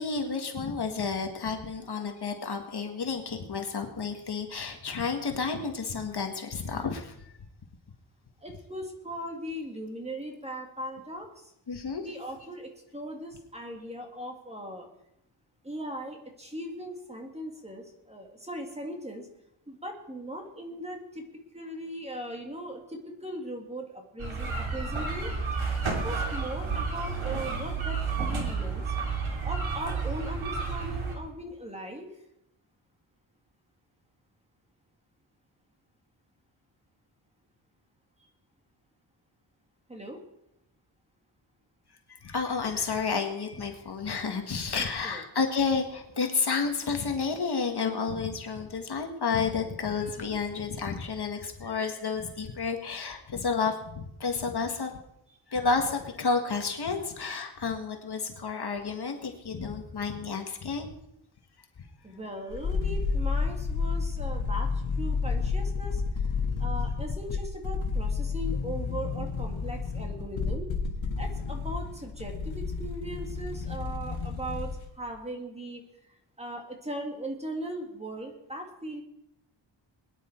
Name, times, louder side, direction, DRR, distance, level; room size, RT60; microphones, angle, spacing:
voice 1, 0.0-7.1 11.7-12.0 42.2-54.9 55.5-60.9, left 5 dB, 55° left, 4 dB, 1.7 m, -31 dB
voice 2, 8.4-11.5 12.0-14.9 15.6-19.3 19.7-21.2 21.5-25.4 25.8-28.8 29.4-32.1 39.9-40.2 44.8-45.2 62.0-66.0 66.6-70.7 71.2-75.8 76.4-79.0, right 1 dB, 15° right, 2 dB, 2.0 m, -39 dB
sound 1, 24.2-31.1, right 4 dB, 85° right, 3.1 m, -31 dB
sound 2, 62.5-74.9 75.2-75.3, left 4 dB, 75° left, 2.0 m, -31 dB
21.5 x 10.0 x 4.5 m, 0.80 s
wide cardioid pair, 160°, 47 cm